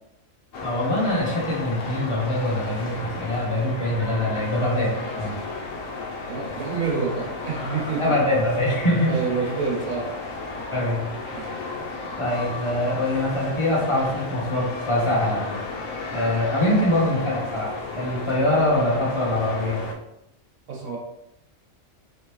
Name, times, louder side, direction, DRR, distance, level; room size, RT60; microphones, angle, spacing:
sound 1, 0.5-19.9, left 3 dB, 90° left, 1.1 m, -34 dB
voice 1, 0.6-5.3 8.0-9.1 10.7-11.0 12.2-15.6 16.1-19.8, left 1 dB, 25° left, -5 dB, 1.1 m, -23 dB
voice 2, 6.3-8.2 9.1-10.0 11.3-11.5 20.7-21.0, right 5 dB, 85° right, -3 dB, 1.5 m, -27 dB
3.6 x 3.3 x 3.0 m, 0.84 s
omnidirectional pair, 1.4 m